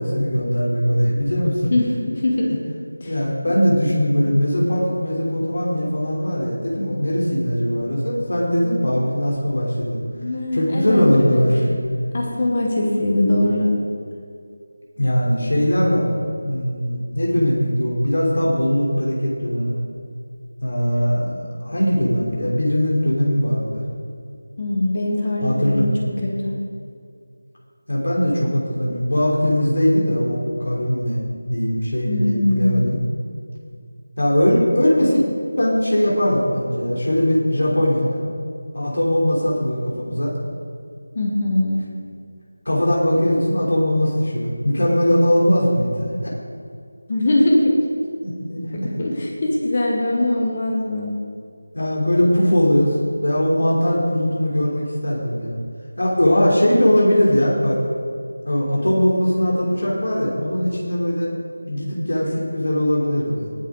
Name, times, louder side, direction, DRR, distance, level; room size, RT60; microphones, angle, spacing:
voice 1, 0.0-1.7 3.0-10.0 10.5-11.7 15.0-16.2 16.4-19.8 20.6-23.8 25.4-25.9 27.9-31.2 31.5-33.0 34.2-35.3 35.6-38.2 38.7-40.3 42.6-46.1 48.2-48.9 51.7-53.0 53.2-55.5 56.0-57.8 58.4-61.3 61.7-63.5, equal, 80° left, -4 dB, 3.1 m, -20 dB
voice 2, 1.7-2.5 3.0-3.1 10.1-11.0 11.3-11.5 12.1-13.7 24.6-26.5 32.0-33.0 41.1-41.9 47.1-47.7 48.8-51.1, left 1 dB, 20° left, -1 dB, 1.0 m, -21 dB
19.0 x 7.3 x 3.8 m, 2.3 s
figure-of-eight pair, 180°, 0 cm